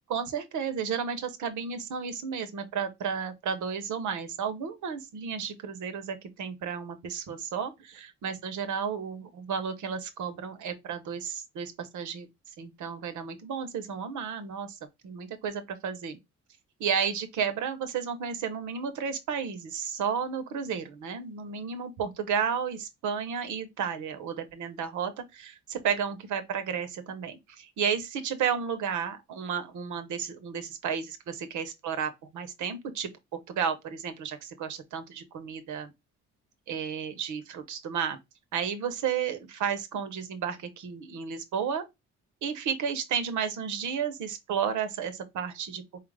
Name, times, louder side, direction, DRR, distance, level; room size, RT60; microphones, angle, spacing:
voice 1, 0.1-12.3 12.6-14.8 15.0-16.2 16.8-33.1 33.5-35.9 36.7-38.2 38.5-41.8 42.4-45.8, right 7 dB, 75° right, 1.0 m, -32 dB
4.5 x 2.5 x 3.3 m
cardioid pair, 90°, 30 cm